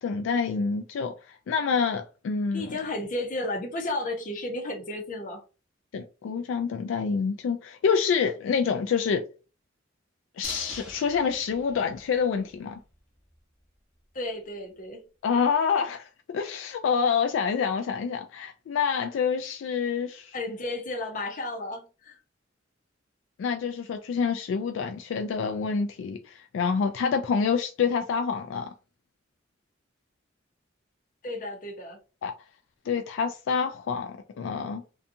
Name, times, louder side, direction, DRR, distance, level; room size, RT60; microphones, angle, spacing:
voice 1, 0.0-2.8 5.9-9.2 10.4-12.8 15.2-16.1 16.3-20.4 23.4-28.7 32.2-32.3 32.9-34.8, left 6 dB, 75° left, 0.3 m, -27 dB
voice 2, 2.5-5.4 14.1-15.0 20.3-22.2 31.2-32.0, left 2 dB, 45° left, 0.7 m, -33 dB
sound 1, 10.4-12.6 12.9-13.0 13.3-13.4, equal, 5° right, 0.9 m, -44 dB
2.6 x 2.3 x 2.6 m
head